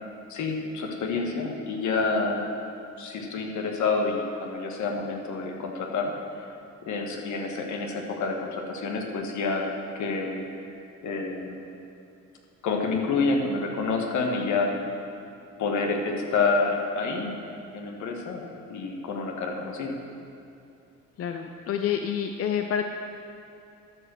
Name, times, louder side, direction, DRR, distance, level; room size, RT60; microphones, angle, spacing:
voice 1, 0.3-2.5 3.0-6.1 6.8-10.4 11.0-11.6 12.6-14.7 15.6-17.4 17.7-18.4 18.7-19.9, left 4 dB, 70° left, 1 dB, 1.4 m, -28 dB
voice 2, 21.2-22.8, left 8 dB, 50° left, 5 dB, 0.6 m, -28 dB
13.0 x 5.0 x 6.3 m, 2.6 s
cardioid pair, 90°, 30 cm